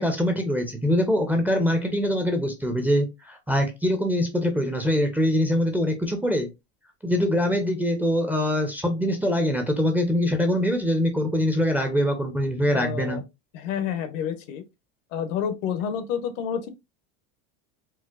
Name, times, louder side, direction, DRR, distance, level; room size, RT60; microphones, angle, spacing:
voice 1, 0.0-6.5 7.0-13.2, equal, 5° right, 0.4 m, -23 dB
voice 2, 12.7-13.2 13.5-14.6 15.1-16.7, left 8 dB, 80° left, 0.8 m, -29 dB
4.4 x 2.1 x 2.3 m
supercardioid pair, 125°, 38 cm